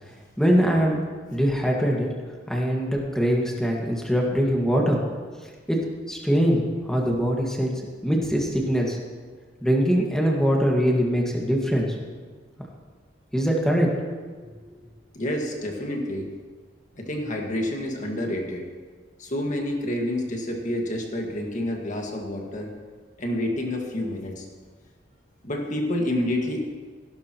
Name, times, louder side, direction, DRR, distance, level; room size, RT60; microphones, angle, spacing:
voice 1, 0.4-1.0 1.3-2.1 2.5-5.0 5.7-7.7 8.0-9.0 9.6-11.9 13.3-13.9, equal, 5° left, -2 dB, 1.8 m, -22 dB
voice 2, 15.1-16.3 17.0-18.7 19.2-22.7 23.2-24.5 25.4-26.6, left 1 dB, 45° left, 1 dB, 1.8 m, -28 dB
16.0 x 12.5 x 3.0 m, 1.5 s
head